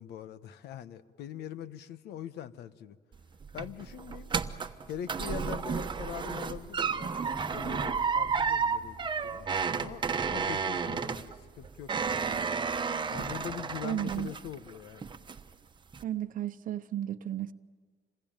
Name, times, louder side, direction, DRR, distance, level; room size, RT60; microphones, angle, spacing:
voice 1, 0.0-3.0 3.5-4.3 4.9-9.0 9.2-9.5 9.7-10.0 10.3-12.4 13.1-15.0, left 10 dB, 75° left, 1.1 m, -42 dB
sound 1, 3.1-14.7 15.0-15.5 15.9-16.0, right 5 dB, 25° right, 1.1 m, -32 dB
voice 2, 13.8-14.3 16.0-17.5, right 11 dB, 55° right, 0.9 m, -33 dB
27.0 x 21.0 x 9.0 m
cardioid pair, 110°, 17 cm